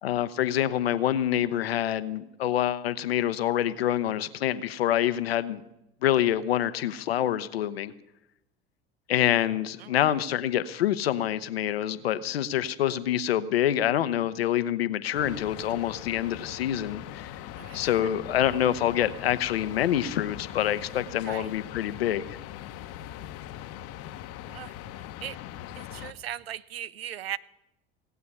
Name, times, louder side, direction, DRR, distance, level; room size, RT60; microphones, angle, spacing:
voice 1, 0.0-5.6 6.0-7.9 9.1-17.2 17.7-22.4, left 11 dB, 85° left, 14 dB, 0.9 m, -26 dB
voice 2, 9.8-10.1 17.6-17.9 21.2-21.5 24.4-24.7 25.2-25.4 25.8-27.4, right 11 dB, 85° right, 19 dB, 0.6 m, -38 dB
sound 1, 15.1-26.1, left 12 dB, 55° left, 0.9 m, -41 dB
18.0 x 8.3 x 9.7 m, 0.89 s
hypercardioid pair, 70°, 30 cm